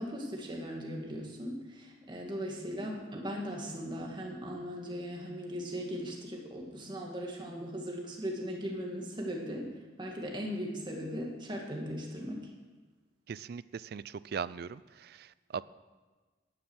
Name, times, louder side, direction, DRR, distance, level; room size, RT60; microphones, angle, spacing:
voice 1, 0.0-9.7 10.0-12.4, equal, 25° right, 0 dB, 2.0 m, -38 dB
voice 2, 13.3-15.6, right 6 dB, 55° right, 18 dB, 0.3 m, -39 dB
11.0 x 9.6 x 6.3 m, 1.3 s
head